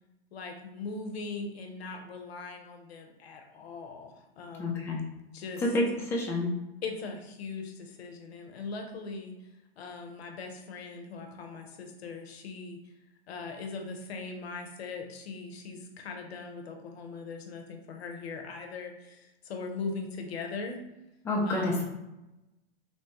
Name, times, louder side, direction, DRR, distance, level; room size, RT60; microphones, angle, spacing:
voice 1, 0.3-4.8 5.3-5.8 6.8-9.4 9.8-12.9 13.3-20.8 21.4-21.8, left 4 dB, 75° left, 4 dB, 0.6 m, -40 dB
voice 2, 4.6-5.0 5.6-6.5 21.3-21.8, left 1 dB, 10° left, -3 dB, 0.4 m, -28 dB
3.1 x 2.1 x 2.9 m, 0.96 s
hypercardioid pair, 110°, 31 cm